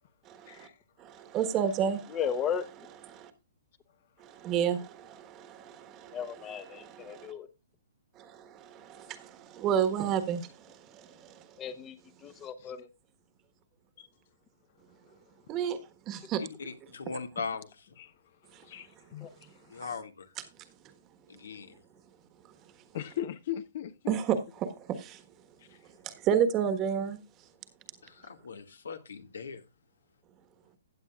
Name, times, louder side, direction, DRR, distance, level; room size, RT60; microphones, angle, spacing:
voice 1, 0.3-0.7 1.0-2.2 3.1-3.3 4.2-7.3 8.2-11.4 15.5-15.8 16.1-16.4 24.1-25.2 26.0-27.2, right 8 dB, 25° right, 1.4 m, -31 dB
voice 2, 2.1-2.7 6.1-7.5 11.6-12.0 12.2-12.9 19.2-19.3, left 8 dB, 20° left, 0.9 m, -35 dB
voice 3, 16.4-17.9 19.7-20.3 21.3-21.8 28.0-29.6, left 5 dB, 85° left, 2.0 m, -40 dB
voice 4, 18.6-19.3 22.9-24.2 25.7-25.8, left 11 dB, 50° left, 1.0 m, -38 dB
15.5 x 8.8 x 2.4 m
hypercardioid pair, 145°, 0 cm